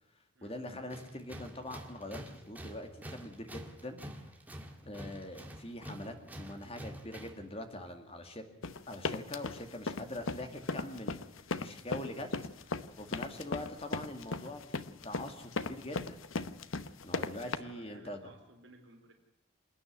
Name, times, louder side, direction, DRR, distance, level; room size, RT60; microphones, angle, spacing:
voice 1, 0.4-4.0 4.8-8.5 8.9-11.2 11.6-12.3 12.6-16.2 17.0-18.2, left 1 dB, 30° left, 6 dB, 2.2 m, -43 dB
Tools, 0.9-7.5, equal, 10° right, 1.9 m, -47 dB
sound 1, 8.6-17.6, left 3 dB, 80° left, 0.9 m, -37 dB
voice 2, 17.3-19.1, right 2 dB, 65° right, 2 dB, 4.0 m, -57 dB
27.5 x 9.9 x 9.7 m, 0.98 s
head